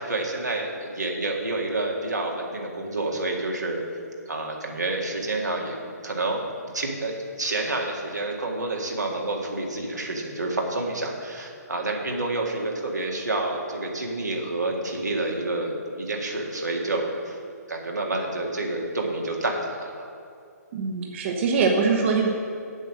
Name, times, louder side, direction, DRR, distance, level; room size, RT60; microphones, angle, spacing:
voice 1, 0.0-3.8 4.3-6.5 6.7-17.4 17.7-20.1, right 2 dB, 80° right, 0 dB, 2.0 m, -29 dB
voice 2, 20.7-22.3, right 4 dB, 40° right, 1 dB, 1.1 m, -23 dB
8.9 x 7.9 x 6.3 m, 2.4 s
figure-of-eight pair, 130°, 9 cm